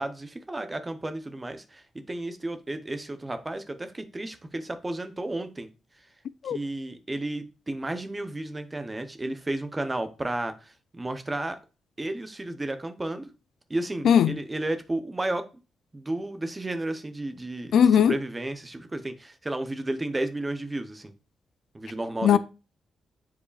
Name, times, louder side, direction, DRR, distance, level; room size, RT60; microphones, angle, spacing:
voice 1, 0.0-5.7 6.4-11.6 12.0-13.3 13.7-15.4 15.9-21.1 21.7-22.4, right 2 dB, 15° right, 0.7 m, -32 dB
voice 2, 14.0-14.4 17.7-18.2 22.2-22.4, left 8 dB, 65° left, 0.3 m, -18 dB
10.0 x 4.8 x 2.4 m
wide cardioid pair, 180°, 0 cm